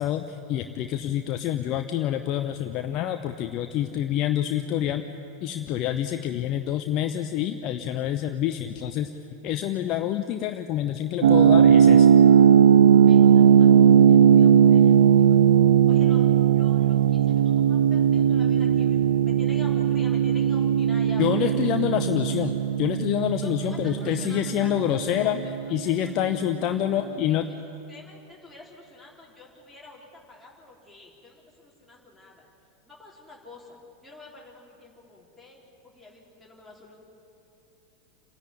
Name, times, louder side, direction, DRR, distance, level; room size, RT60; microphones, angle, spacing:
voice 1, 0.0-5.0 5.4-9.1 9.4-12.1 21.2-25.4 25.7-27.5, left 11 dB, 40° left, 7 dB, 0.7 m, -27 dB
sound 1, 11.2-26.0, right 8 dB, 65° right, 0.5 m, -18 dB
voice 2, 13.1-15.6 15.9-16.3 16.5-21.6 23.4-24.9 25.2-25.5 25.8-26.9 27.9-32.5 32.8-37.0, left 2 dB, ahead, -3 dB, 4.0 m, -47 dB
28.5 x 10.5 x 9.8 m, 2.8 s
figure-of-eight pair, 85°, 0 cm